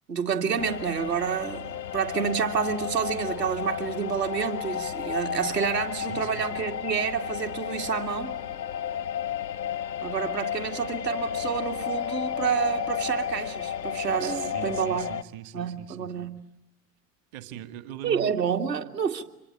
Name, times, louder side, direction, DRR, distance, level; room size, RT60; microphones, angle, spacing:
voice 1, 0.1-8.4 10.0-15.2 15.5-16.5 18.0-19.2, right 7 dB, 75° right, 2.3 m, -29 dB
sound 1, 0.6-15.2, left 9 dB, 85° left, 0.9 m, -33 dB
voice 2, 5.9-6.4 14.2-16.3 17.3-18.3, right 13 dB, 55° right, 2.2 m, -41 dB
26.0 x 22.5 x 9.7 m
figure-of-eight pair, 80°, 49 cm